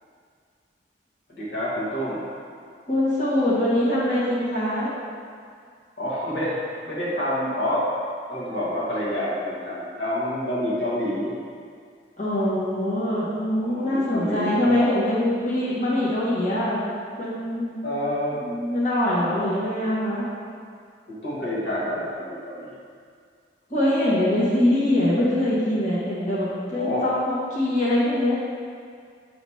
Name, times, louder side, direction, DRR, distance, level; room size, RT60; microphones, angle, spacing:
voice 1, 1.3-2.2 6.0-7.8 8.3-11.3 13.5-15.0 17.8-18.4 21.1-22.8 26.7-27.1, equal, 70° left, -7 dB, 1.7 m, -28 dB
voice 2, 2.9-4.9 12.2-16.8 17.2-17.7 18.3-20.3 23.7-28.3, left 1 dB, 45° left, -9 dB, 1.5 m, -23 dB
7.1 x 3.2 x 5.6 m, 2.2 s
head